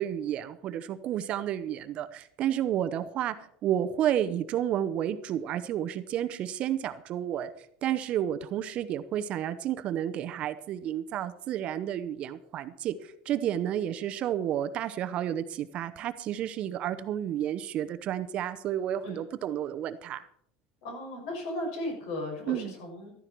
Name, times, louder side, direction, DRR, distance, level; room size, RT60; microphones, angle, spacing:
voice 1, 0.0-7.5 7.8-12.9 13.3-20.3 22.5-22.7, right 10 dB, 35° right, 11 dB, 0.7 m, -31 dB
voice 2, 20.8-23.1, left 1 dB, 65° left, 2 dB, 6.4 m, -36 dB
14.0 x 13.5 x 4.6 m, 0.66 s
cardioid pair, 175°, 4 cm